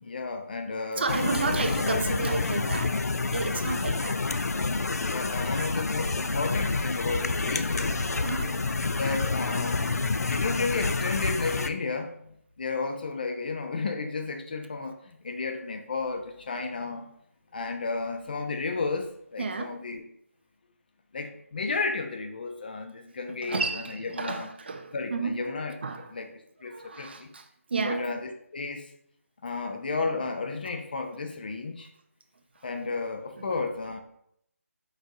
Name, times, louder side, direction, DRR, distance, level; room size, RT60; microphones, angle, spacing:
voice 1, 0.0-2.2 5.0-8.0 8.8-9.9 10.3-17.1 17.5-20.0 21.1-24.5 24.9-25.7 26.1-26.3 26.6-27.3 27.8-28.9 29.4-31.9 32.6-34.0, left 4 dB, 35° left, 6 dB, 0.5 m, -33 dB
voice 2, 1.0-3.0 3.3-4.2 4.6-4.7 5.0-5.8 7.6-8.6 19.4-19.8 23.4-25.4 25.8-26.1 26.7-28.2, right 4 dB, 40° right, 6 dB, 0.5 m, -32 dB
sound 1, 1.1-11.7, left 3 dB, 85° left, 0.4 m, -28 dB
4.8 x 3.9 x 2.6 m, 0.72 s
figure-of-eight pair, 165°, 8 cm